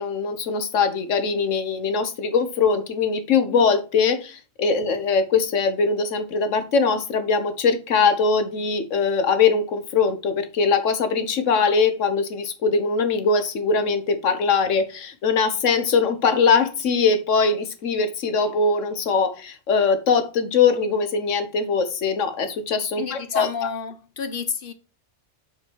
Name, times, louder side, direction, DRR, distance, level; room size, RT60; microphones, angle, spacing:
voice 1, 0.0-23.5, left 5 dB, 85° left, 1.4 m, -21 dB
voice 2, 23.0-24.7, left 6 dB, 50° left, 0.9 m, -30 dB
6.0 x 5.6 x 4.6 m
omnidirectional pair, 1.3 m